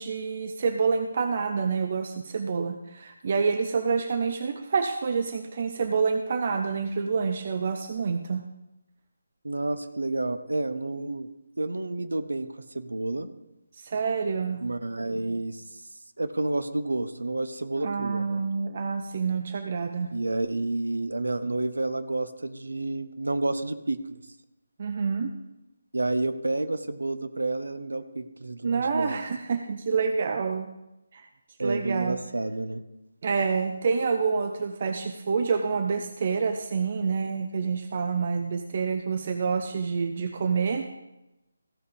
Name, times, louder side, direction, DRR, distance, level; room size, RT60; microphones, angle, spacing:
voice 1, 0.0-8.4 13.8-14.6 17.8-20.1 24.8-25.3 28.6-30.7 31.1-31.3 31.6-32.2 33.2-40.9, right 5 dB, 40° right, 7 dB, 0.6 m, -27 dB
voice 2, 9.4-11.3 11.6-12.5 12.7-13.3 14.6-15.6 16.2-18.4 20.1-24.2 25.9-29.2 31.6-32.8, right 2 dB, 70° right, 10 dB, 0.9 m, -30 dB
15.5 x 5.4 x 5.1 m, 0.93 s
figure-of-eight pair, 150°, 0 cm